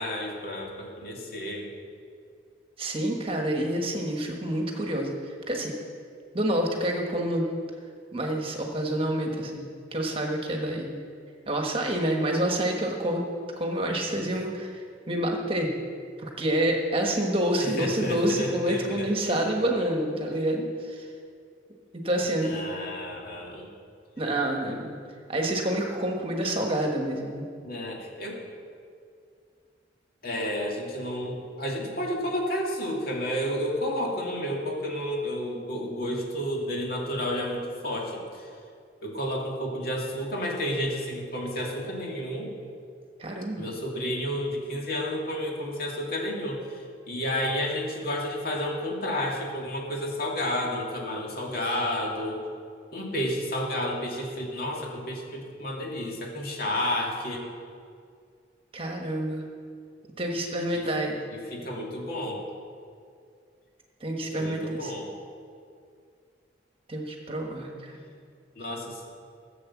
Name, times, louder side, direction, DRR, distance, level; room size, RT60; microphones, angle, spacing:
voice 1, 0.0-1.7 14.2-14.3 17.6-19.5 22.2-23.7 27.6-28.4 30.2-38.5 39.0-42.5 43.6-52.4 52.9-57.4 60.7-60.9 61.3-62.5 64.2-65.1 68.6-69.0, left 1 dB, 50° left, -1 dB, 2.4 m, -31 dB
voice 2, 2.8-5.7 6.3-7.5 8.1-11.0 11.5-13.3 13.6-15.7 16.2-21.1 21.9-22.5 24.2-25.0 25.3-27.4 43.2-43.7 58.7-59.5 60.2-61.2 64.0-64.9 66.9-68.0, right 1 dB, 30° right, 1 dB, 1.4 m, -28 dB
15.0 x 7.8 x 7.3 m, 2.3 s
head